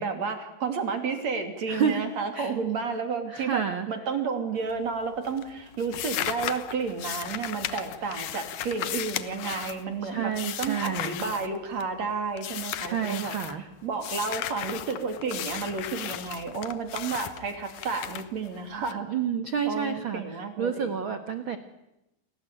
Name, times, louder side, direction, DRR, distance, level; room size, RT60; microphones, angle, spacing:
voice 1, 0.0-10.3 10.6-13.3 13.8-19.1 19.7-20.9, right 5 dB, 45° right, 6 dB, 3.8 m, -31 dB
voice 2, 1.7-2.0 2.3-2.5 3.3-3.9 10.0-11.1 12.8-13.6 19.1-21.6, right 7 dB, 75° right, 8 dB, 1.1 m, -29 dB
sound 1, 4.6-5.0 5.2-12.0 12.4-13.6 14.0-18.9, left 12 dB, 65° left, 2.1 m, -36 dB
29.5 x 19.0 x 9.0 m, 0.91 s
omnidirectional pair, 4.6 m